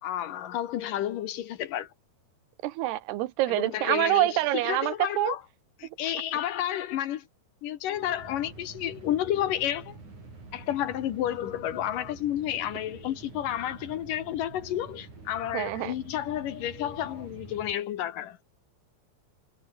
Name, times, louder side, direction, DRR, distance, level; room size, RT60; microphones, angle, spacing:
voice 1, 0.0-1.9 3.5-5.4 5.8-7.2 7.6-10.0 10.5-18.4, left 11 dB, 70° left, 2.5 m, -31 dB
voice 2, 2.6-5.3 15.5-15.9, right 16 dB, 85° right, 3.1 m, -26 dB
sound 1, 7.9-17.7, right 3 dB, 50° right, 9.6 m, -47 dB
omnidirectional pair, 4.5 m